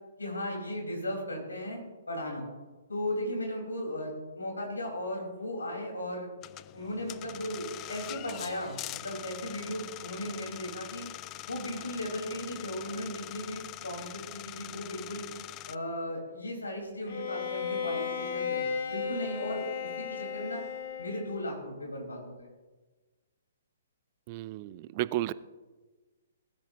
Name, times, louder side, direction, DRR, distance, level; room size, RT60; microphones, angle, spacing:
voice 1, 0.2-1.8 2.1-2.4 2.9-6.3 6.7-11.1 11.5-15.3 15.7-18.6 18.9-20.6 21.0-22.5, left 1 dB, 80° left, 0 dB, 5.1 m, -36 dB
sound 1, 6.4-15.8, left 16 dB, 25° left, 0.4 m, -43 dB
Bowed string instrument, 17.1-21.5, left 6 dB, 50° left, 2.0 m, -35 dB
voice 2, 24.3-25.3, right 16 dB, 35° right, 17 dB, 0.5 m, -33 dB
19.5 x 13.5 x 3.1 m, 1.3 s
figure-of-eight pair, 125°, 0 cm